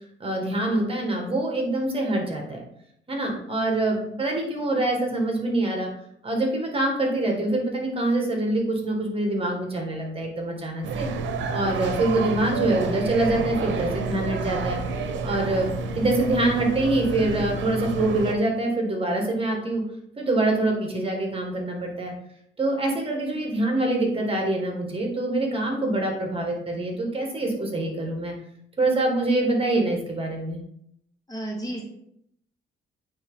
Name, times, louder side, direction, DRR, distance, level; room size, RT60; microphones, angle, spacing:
voice 1, 0.2-2.6 3.1-5.9 6.2-11.1 11.5-14.8 15.2-15.7 16.0-19.8 20.2-22.1 22.6-28.3 28.8-30.6, right 2 dB, 30° right, 1 dB, 1.8 m, -25 dB
sound 1, 10.8-18.3, right 4 dB, 70° right, 0.8 m, -29 dB
voice 2, 31.3-31.8, right 1 dB, 20° left, 0 dB, 1.3 m, -32 dB
8.8 x 3.5 x 3.7 m, 0.74 s
cardioid pair, 90°, 20 cm